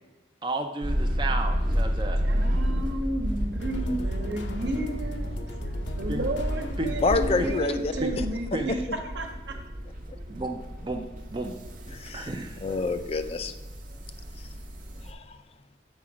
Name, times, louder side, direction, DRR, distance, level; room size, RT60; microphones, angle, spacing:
voice 1, 0.4-2.2 6.1-6.3 6.8-7.0 7.4-7.5 8.0-8.1 8.5-8.7 10.3-11.0 11.3-11.5 12.1-12.6, right 2 dB, 25° right, 3 dB, 0.5 m, -32 dB
sound 1, 0.8-15.1, equal, 45° right, 0.9 m, -31 dB
voice 2, 2.2-5.3 6.0-9.6, right 1 dB, 70° right, 4 dB, 1.2 m, -32 dB
sound 2, 3.6-7.7, left 1 dB, 75° left, 0.8 m, -39 dB
voice 3, 7.0-8.2 11.9-12.3 12.6-13.5 15.1-15.4, left 3 dB, 35° left, 9 dB, 0.4 m, -28 dB
7.2 x 5.1 x 4.8 m, 1.1 s
head